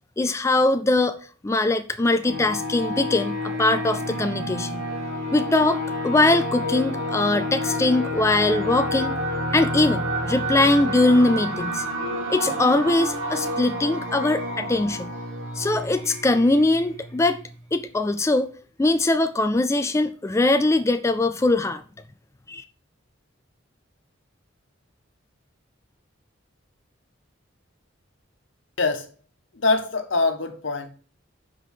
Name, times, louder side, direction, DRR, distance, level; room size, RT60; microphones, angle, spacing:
voice 1, 0.2-1.2 1.4-4.8 5.3-9.1 9.5-11.8 12.3-15.1 15.6-17.4 17.7-18.5 18.8-21.8 22.5-22.6, left 2 dB, 15° left, 0.3 m, -21 dB
sound 1, 2.2-17.6, equal, 90° right, 1.8 m, -29 dB
voice 2, 29.6-30.9, left 3 dB, 75° left, 1.2 m, -23 dB
5.7 x 5.1 x 6.4 m
head